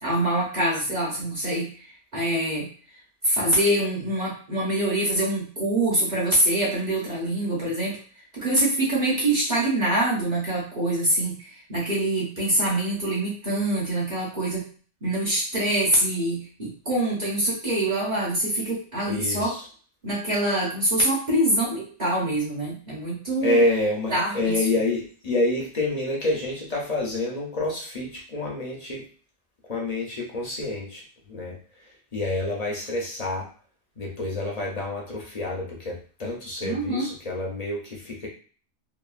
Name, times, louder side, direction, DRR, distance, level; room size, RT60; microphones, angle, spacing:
voice 1, 0.0-1.7 2.1-2.7 3.2-8.0 8.3-14.6 15.0-19.5 20.0-23.6 24.1-24.6 36.6-37.1, right 1 dB, 40° right, -5 dB, 0.8 m, -25 dB
voice 2, 19.1-19.6 23.4-29.0 29.6-31.6 32.1-33.5 34.0-38.3, left 2 dB, 45° left, -2 dB, 0.5 m, -28 dB
2.9 x 2.3 x 2.4 m, 0.42 s
omnidirectional pair, 1.4 m